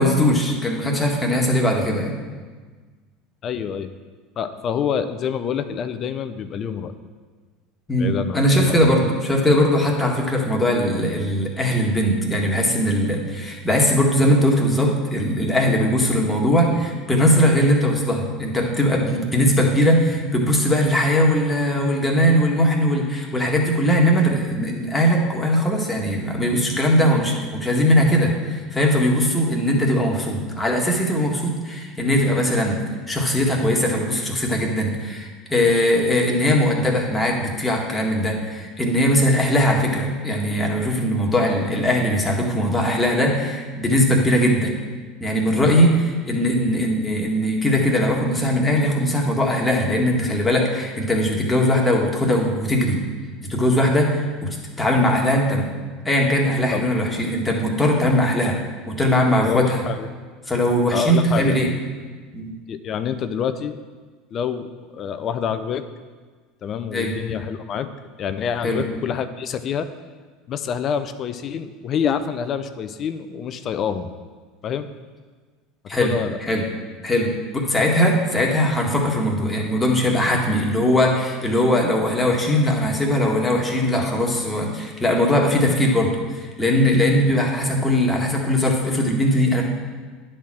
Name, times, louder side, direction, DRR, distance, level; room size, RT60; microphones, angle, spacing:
voice 1, 0.0-2.1 7.9-32.8 33.1-44.7 45.2-53.0 53.4-55.7 56.0-58.6 58.8-59.8 60.5-61.7 62.3-62.5 66.9-67.1 68.6-68.8 75.9-76.1 76.4-76.7 77.0-89.6, equal, 15° left, -1 dB, 1.8 m, -20 dB
voice 2, 3.4-3.9 4.4-6.9 8.0-8.9 45.5-45.7 56.7-56.8 59.4-60.1 60.9-61.6 62.7-63.8 64.3-65.8 66.6-67.9 68.2-69.9 70.5-74.1 74.6-74.9 75.9-76.4, left 7 dB, 45° left, 11 dB, 0.5 m, -27 dB
10.0 x 4.4 x 6.1 m, 1.4 s
hypercardioid pair, 85°, 0 cm